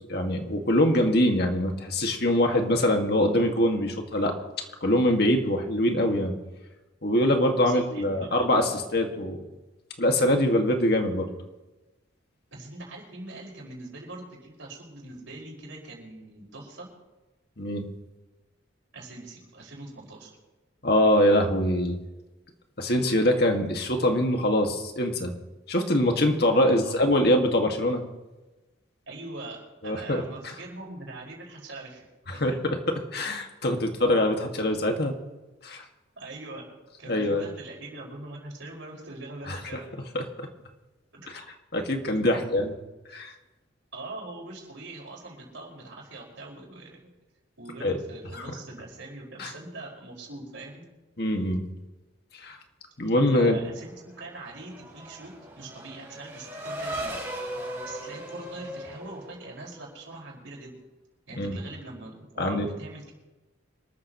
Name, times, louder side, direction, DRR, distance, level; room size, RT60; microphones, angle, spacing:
voice 1, 0.1-4.3 4.8-6.4 7.0-9.4 10.0-11.3 17.6-17.8 20.8-22.0 22.8-25.3 25.7-28.0 29.8-30.2 32.3-35.1 35.6-35.8 37.1-37.5 39.5-39.6 40.1-40.5 41.3-41.4 41.7-42.7 43.1-43.3 47.8-48.0 48.3-48.4 49.4-49.5 51.2-51.6 52.4-52.6 53.0-53.6 61.4-61.6 62.4-62.7, left 1 dB, 55° left, 3 dB, 1.9 m, -23 dB
voice 2, 7.6-8.3 12.5-16.9 18.9-20.3 26.6-26.9 29.1-32.5 36.2-36.7 37.0-39.9 41.1-41.4 42.2-42.4 43.9-47.1 47.6-50.9 53.3-57.2 57.8-60.8 61.3-63.1, right 2 dB, 75° right, -1 dB, 5.3 m, -42 dB
Race car auto racing / Accelerating revving vroom, 53.9-60.0, right 1 dB, 15° right, 7.0 m, -38 dB
26.0 x 14.0 x 3.1 m, 1.1 s
head